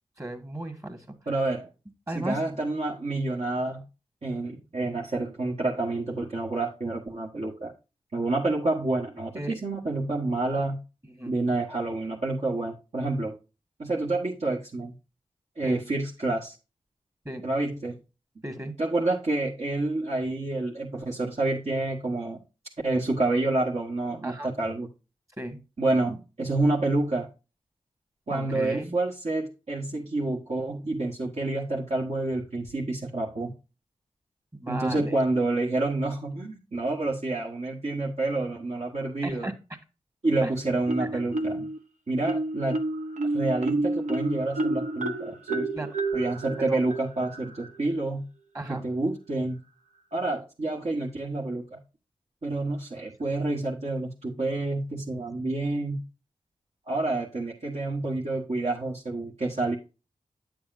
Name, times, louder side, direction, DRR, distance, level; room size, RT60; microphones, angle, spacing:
voice 1, 0.2-1.1 2.1-2.4 9.4-9.6 11.0-11.3 15.6-15.8 17.3-17.4 18.4-18.7 24.2-24.5 25.4-25.6 28.3-29.0 34.6-35.2 39.2-39.5 40.4-40.5 41.0-41.1 45.7-45.9 46.6-46.8 48.5-48.8, right 1 dB, 25° right, 7 dB, 2.0 m, -35 dB
voice 2, 1.3-1.7 2.1-3.9 4.2-7.7 8.1-10.8 11.3-13.4 13.8-14.9 15.6-16.6 17.4-18.0 18.8-22.4 22.8-24.9 25.8-27.3 28.3-33.5 34.7-39.5 40.2-41.7 42.1-42.8 43.3-45.7 46.1-48.2 48.7-49.6 50.1-51.8 52.4-56.0 56.9-59.8, right 2 dB, 55° right, -4 dB, 1.6 m, -28 dB
Marimba xylophone, 40.9-41.8 42.2-47.8, right 2 dB, 70° right, 1.0 m, -30 dB
9.1 x 6.9 x 2.6 m, 0.30 s
cardioid pair, 40°, 13 cm